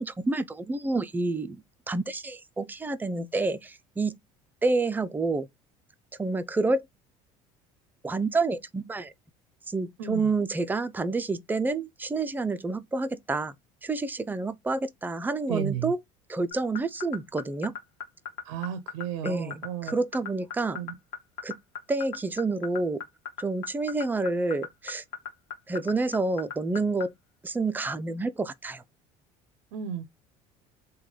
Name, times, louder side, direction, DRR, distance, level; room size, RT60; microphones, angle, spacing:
voice 1, 0.0-1.6 1.9-4.2 4.6-5.5 6.2-6.8 8.0-9.1 9.7-13.5 13.8-16.0 16.3-17.7 19.2-20.8 21.4-21.5 21.9-23.0 23.4-25.0 25.7-27.1 27.4-28.8, right 3 dB, 10° right, 0.4 m, -28 dB
voice 2, 15.5-15.9 18.5-19.9 20.7-20.9 29.7-30.1, right 9 dB, 85° right, 0.5 m, -33 dB
sound 1, 16.5-27.0, left 7 dB, 75° left, 1.0 m, -35 dB
3.1 x 2.2 x 3.7 m
supercardioid pair, 90°, 16 cm